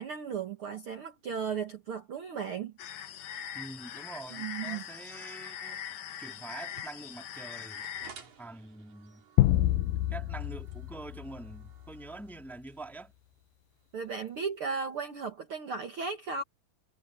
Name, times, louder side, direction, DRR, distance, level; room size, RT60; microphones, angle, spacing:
voice 1, 0.0-2.7 4.3-4.8 13.9-16.4, right 6 dB, 80° right, 1.2 m, -35 dB
sound 1, 2.8-8.1, left 9 dB, 65° left, 1.9 m, -41 dB
voice 2, 3.5-5.8 6.2-7.9 8.4-9.2 10.1-13.1, right 2 dB, ahead, 1.5 m, -45 dB
sound 2, 6.5-14.4, right 5 dB, 45° right, 4.8 m, -57 dB
sound 3, 9.4-12.0, left 15 dB, 90° left, 2.0 m, -28 dB
omnidirectional pair, 4.8 m